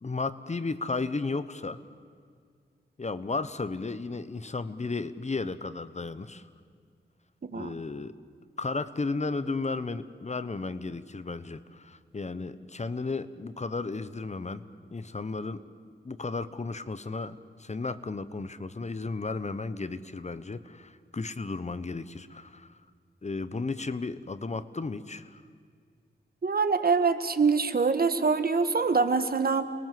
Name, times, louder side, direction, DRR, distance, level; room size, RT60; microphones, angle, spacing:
voice 1, 0.0-1.8 3.0-6.4 7.5-8.2 8.6-14.7 14.9-15.6 16.0-22.8 23.2-25.4, left 3 dB, 40° left, 13 dB, 1.1 m, -34 dB
voice 2, 26.4-29.7, right 4 dB, 55° right, 10 dB, 1.6 m, -24 dB
30.0 x 22.0 x 7.7 m, 2.1 s
wide cardioid pair, 70°, 18 cm